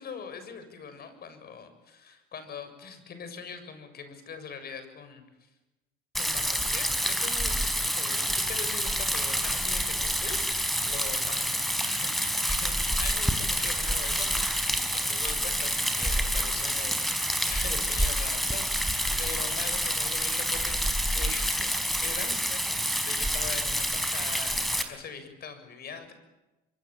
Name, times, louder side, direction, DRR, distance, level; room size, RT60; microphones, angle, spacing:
voice 1, 0.0-5.2 6.2-26.1, left 6 dB, 50° left, 10 dB, 7.1 m, -42 dB
Rain, 6.1-24.8, equal, ahead, 4.6 m, -28 dB
25.0 x 24.5 x 9.0 m, 1.0 s
supercardioid pair, 85°, 21 cm